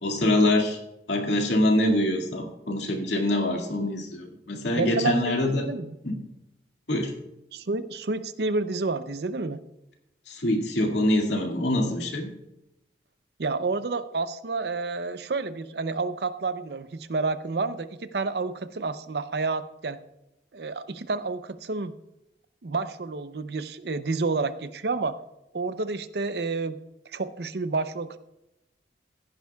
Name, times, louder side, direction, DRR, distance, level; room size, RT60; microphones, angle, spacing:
voice 1, 0.0-0.8 1.1-5.7 6.0-6.2 6.9-7.1 10.3-12.3, left 1 dB, 85° left, 2 dB, 2.2 m, -24 dB
voice 2, 4.8-6.0 7.5-9.6 13.4-20.0 20.5-22.0 22.6-25.2 25.5-26.8 27.1-28.2, right 3 dB, 65° right, 12 dB, 0.6 m, -29 dB
15.5 x 10.5 x 2.3 m, 0.90 s
head